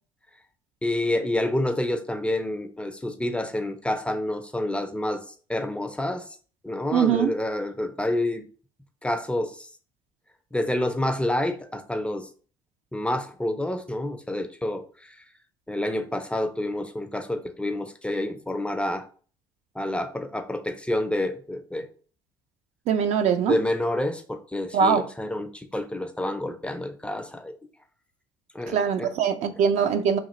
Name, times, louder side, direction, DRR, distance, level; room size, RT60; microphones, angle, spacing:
voice 1, 0.8-5.2 5.5-6.2 6.6-8.4 9.0-9.7 10.5-12.3 12.9-15.2 15.7-19.1 19.8-21.9 23.5-27.5 28.5-29.1, left 1 dB, 10° left, 0.4 m, -28 dB
voice 2, 6.9-7.3 22.9-23.6 24.7-25.0 28.7-30.2, right 7 dB, 60° right, 0.4 m, -22 dB
2.9 x 2.4 x 3.0 m
hypercardioid pair, 70°, 13 cm